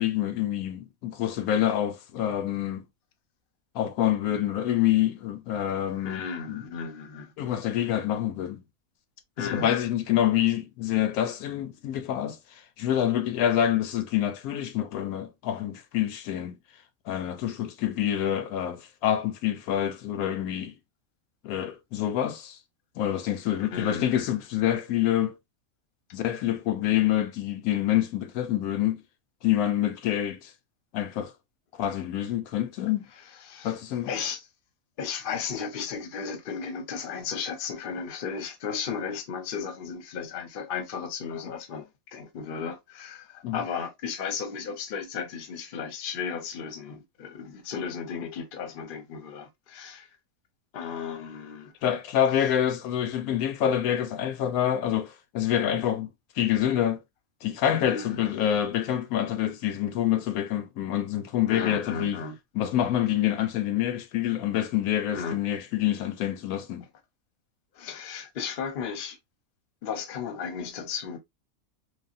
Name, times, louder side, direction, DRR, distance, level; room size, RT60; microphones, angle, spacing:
voice 1, 0.0-2.8 3.7-6.6 7.4-8.6 9.4-12.4 12.8-16.6 17.1-20.7 21.4-22.6 23.0-25.3 26.1-29.0 29.4-30.5 30.9-31.3 31.7-33.1 33.6-34.1 43.4-43.6 51.8-56.1 56.4-57.0 57.4-62.2 62.6-66.9, left 11 dB, 90° left, 1.1 m, -27 dB
voice 2, 6.0-7.3 9.4-9.7 23.6-24.2 33.4-33.8 34.1-34.4 35.0-50.1 50.7-51.7 52.4-52.5 57.9-58.3 61.5-62.3 65.1-65.4 67.7-69.2 69.8-71.2, left 6 dB, 50° left, 0.7 m, -35 dB
3.3 x 2.2 x 2.4 m
omnidirectional pair, 1.5 m